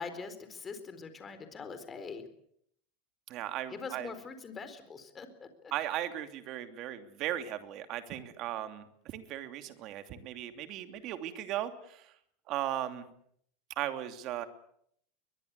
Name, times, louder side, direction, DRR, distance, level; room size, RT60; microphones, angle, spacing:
voice 1, 0.0-2.2 3.7-5.7, left 5 dB, 20° left, 10 dB, 4.1 m, -43 dB
voice 2, 3.3-4.1 5.7-12.1 12.5-13.1 13.8-14.5, right 12 dB, 45° right, 8 dB, 2.9 m, -37 dB
22.0 x 22.0 x 8.3 m, 0.69 s
supercardioid pair, 130°, 0 cm